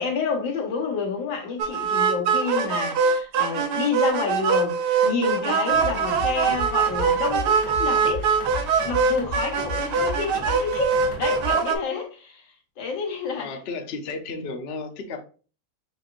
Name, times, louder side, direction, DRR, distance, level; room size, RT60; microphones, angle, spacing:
voice 1, 0.0-8.3 8.8-12.5 12.8-13.5, left 5 dB, 80° left, 1.9 m, -29 dB
sound 1, 1.6-11.8, right 6 dB, 70° right, 1.2 m, -23 dB
sound 2, 5.7-11.5, left 2 dB, 30° left, 1.7 m, -35 dB
voice 2, 13.4-15.2, left 3 dB, 55° left, 0.7 m, -33 dB
6.5 x 3.0 x 2.5 m
omnidirectional pair, 2.1 m